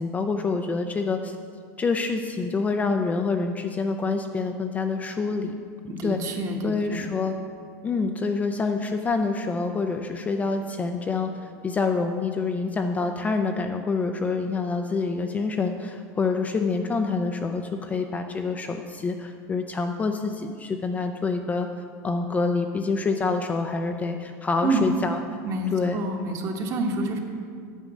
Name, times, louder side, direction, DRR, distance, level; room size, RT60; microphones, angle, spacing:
voice 1, 0.0-1.4 1.8-5.5 6.0-6.2 6.6-7.4 7.8-21.7 22.0-25.2 25.7-26.0, left 4 dB, 15° left, 5 dB, 0.4 m, -26 dB
voice 2, 5.9-7.1 24.6-24.9 25.4-27.2, right 2 dB, 35° right, 3 dB, 1.2 m, -28 dB
9.0 x 5.2 x 7.4 m, 2.1 s
supercardioid pair, 140°, 9 cm